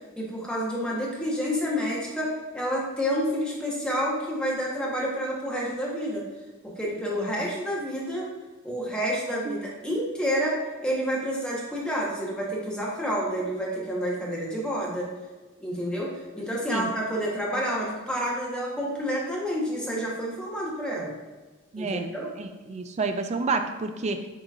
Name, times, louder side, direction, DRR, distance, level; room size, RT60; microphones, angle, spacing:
voice 1, 0.2-6.2 6.8-8.3 8.6-15.1 15.6-21.1 21.8-22.3, equal, 5° left, -4 dB, 1.0 m, -29 dB
voice 2, 21.7-22.1 22.4-24.3, right 4 dB, 30° right, 7 dB, 0.3 m, -30 dB
7.4 x 3.0 x 2.4 m, 1.3 s
head